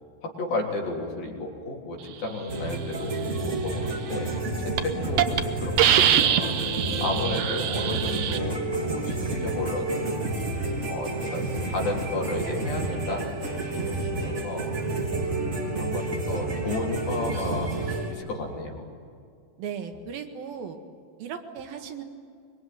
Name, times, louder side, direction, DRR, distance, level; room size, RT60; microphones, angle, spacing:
voice 1, 0.2-4.4 4.6-10.3 10.9-13.4 13.7-14.7 15.3-18.9, left 2 dB, 85° left, 0 dB, 5.3 m, -33 dB
sound 1, 2.5-18.1, right 2 dB, 20° right, 3.4 m, -30 dB
Hiss, 4.2-4.4 4.8-4.9 5.2-5.4 5.8-8.4, right 10 dB, 70° right, 1.5 m, -23 dB
voice 2, 19.6-20.8 21.2-22.0, right 7 dB, 85° right, 5 dB, 3.5 m, -37 dB
24.5 x 23.0 x 9.4 m, 2.3 s
omnidirectional pair, 4.0 m